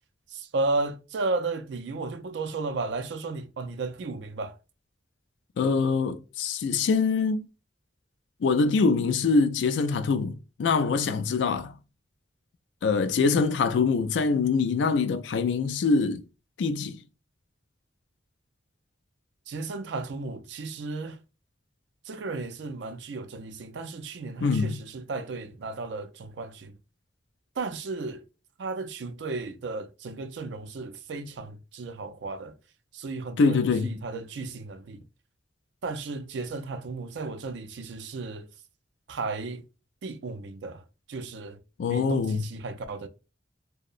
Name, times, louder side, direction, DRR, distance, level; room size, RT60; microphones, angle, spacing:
voice 1, 0.3-4.6 13.2-13.4 19.5-21.2 22.0-26.8 27.6-28.2 28.6-32.6 32.9-35.0 35.8-38.5 39.1-39.6 40.0-41.6 41.9-43.1, right 3 dB, 75° right, 0.4 m, -34 dB
voice 2, 5.6-7.5 8.4-11.7 12.8-16.2 16.6-17.0 24.4-24.8 33.4-33.9 41.8-42.4, left 4 dB, 75° left, 0.3 m, -24 dB
2.7 x 2.1 x 2.4 m
head